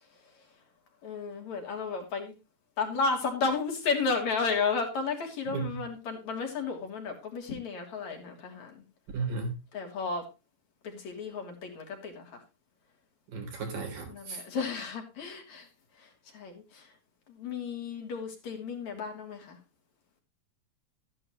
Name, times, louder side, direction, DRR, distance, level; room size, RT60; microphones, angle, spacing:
voice 1, 1.0-2.4 2.8-8.8 9.7-10.3 10.8-12.4 14.1-15.7 16.3-16.9 17.3-19.6, left 4 dB, 60° left, 3 dB, 4.0 m, -33 dB
voice 2, 9.1-9.6 13.3-14.4, right 4 dB, 90° right, 3 dB, 5.2 m, -34 dB
14.0 x 11.0 x 3.1 m, 0.26 s
omnidirectional pair, 3.7 m